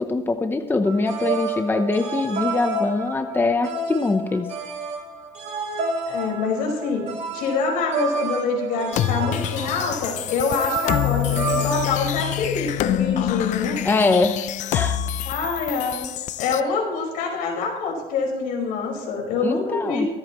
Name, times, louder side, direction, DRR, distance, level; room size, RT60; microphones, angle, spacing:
voice 1, 0.0-4.5 13.8-14.4 14.7-15.0 19.4-20.1, left 3 dB, 15° left, 6 dB, 0.8 m, -23 dB
sound 1, 0.9-11.9, right 3 dB, 55° right, 4.9 m, -29 dB
voice 2, 6.0-7.0 7.3-13.8 15.2-16.1 16.4-20.1, left 4 dB, 80° left, 1 dB, 5.0 m, -25 dB
sound 2, 8.9-16.6, left 12 dB, 60° left, 0.6 m, -26 dB
24.5 x 8.7 x 3.1 m, 1.1 s
cardioid pair, 140°, 14 cm